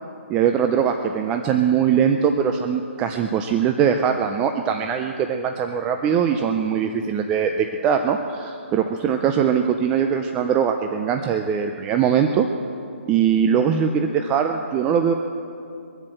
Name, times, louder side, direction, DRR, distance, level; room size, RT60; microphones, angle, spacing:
voice 1, 0.3-12.5 13.1-15.1, right 7 dB, 15° right, 5 dB, 0.4 m, -21 dB
22.5 x 7.6 x 7.7 m, 2.6 s
hypercardioid pair, 160°, 7 cm